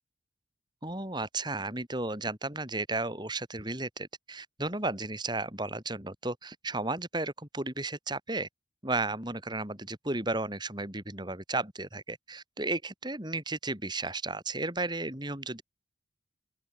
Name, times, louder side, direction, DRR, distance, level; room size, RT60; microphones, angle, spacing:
voice 1, 0.8-8.5 8.8-15.6, right 2 dB, 25° right, 4.7 m, -34 dB
open air
head